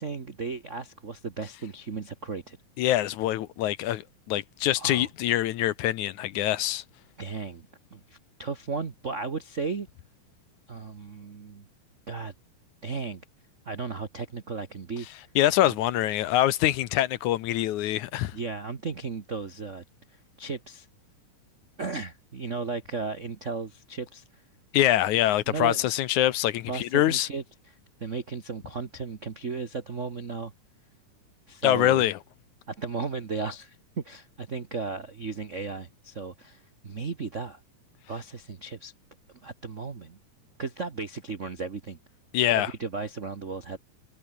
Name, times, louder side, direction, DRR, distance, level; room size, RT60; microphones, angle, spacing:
voice 1, 0.0-2.6 4.8-5.1 7.2-9.9 10.7-11.6 12.1-12.3 12.8-13.2 13.6-15.1 15.6-15.7 18.3-19.8 20.4-20.9 21.8-24.4 25.5-25.8 26.7-27.7 28.0-30.5 31.5-32.1 32.7-37.6 38.1-38.9 39.4-40.2 40.6-42.0 42.5-43.8, right 4 dB, 65° right, 0.7 m, -35 dB
voice 2, 2.8-4.0 4.3-6.8 15.4-18.4 24.7-27.3 31.6-32.2 42.3-42.7, left 13 dB, 75° left, 2.2 m, -24 dB
omnidirectional pair, 3.7 m